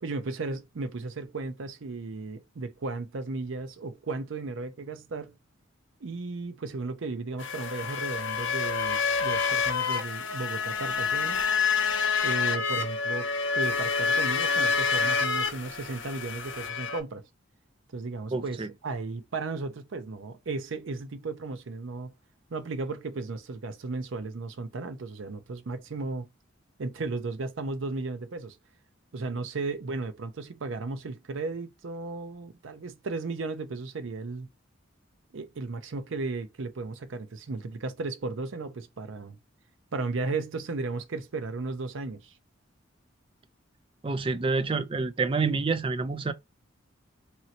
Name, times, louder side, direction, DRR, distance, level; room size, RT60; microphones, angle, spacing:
voice 1, 0.0-5.4 6.0-11.4 12.2-13.3 13.5-17.2 17.9-18.6 18.8-22.1 22.5-26.3 26.8-28.6 29.1-34.5 35.3-39.4 39.9-42.3, right 3 dB, 75° right, 0.6 m, -35 dB
sound 1, 7.4-17.0, left 5 dB, 65° left, 0.6 m, -28 dB
voice 2, 18.3-18.7 44.0-46.3, right 4 dB, 25° right, 0.4 m, -28 dB
3.0 x 2.7 x 2.8 m
head